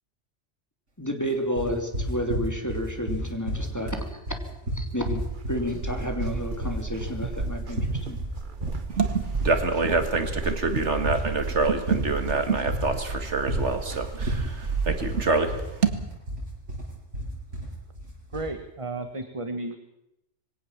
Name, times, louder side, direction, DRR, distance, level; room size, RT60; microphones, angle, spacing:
voice 1, 1.0-4.2 4.7-8.2, equal, 15° left, 4 dB, 2.8 m, -31 dB
sound 1, 1.6-18.5, right 1 dB, 90° right, 7.8 m, -32 dB
sound 2, 5.0-15.2, right 4 dB, 45° right, 1.4 m, -34 dB
voice 2, 8.9-15.7, right 3 dB, 70° right, 8 dB, 2.3 m, -26 dB
voice 3, 18.3-19.8, right 2 dB, 25° right, 8 dB, 1.3 m, -33 dB
22.0 x 17.0 x 7.3 m, 0.88 s
omnidirectional pair, 1.2 m